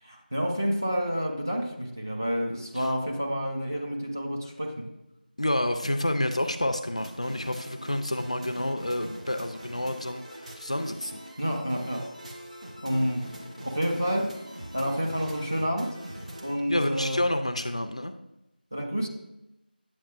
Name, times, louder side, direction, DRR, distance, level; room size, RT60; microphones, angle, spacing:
voice 1, 0.0-4.9 11.4-12.1 12.8-13.4 13.6-14.4 14.7-16.0 16.4-17.2 18.7-19.1, equal, 20° right, -1 dB, 0.5 m, -29 dB
voice 2, 5.4-11.2 16.7-18.1, left 1 dB, 40° left, 8 dB, 0.4 m, -29 dB
sound 1, 6.8-16.6, equal, 40° right, 1.2 m, -43 dB
8.3 x 8.0 x 2.3 m, 0.92 s
figure-of-eight pair, 175°, 5 cm